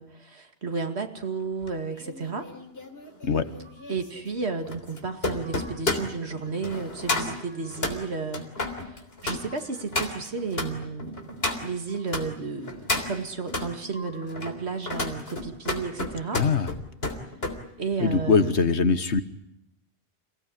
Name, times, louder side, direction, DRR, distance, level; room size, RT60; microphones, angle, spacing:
voice 1, 0.0-2.5 3.9-16.4 17.8-18.6, right 4 dB, 75° right, 5 dB, 2.4 m, -33 dB
sound 1, 1.6-12.3 12.6-13.7 14.2-17.6 17.9-18.2, left 2 dB, 65° left, 3.8 m, -32 dB
sound 2, 3.6-4.2 5.0-6.0 7.0-8.0 8.9-10.1 11.6-12.5 13.6-14.6, equal, 50° left, 7.8 m, -53 dB
voice 2, 16.3-16.7 18.0-19.2, left 5 dB, 85° left, 11 dB, 1.8 m, -22 dB
29.0 x 18.0 x 10.0 m, 0.80 s
omnidirectional pair, 1.1 m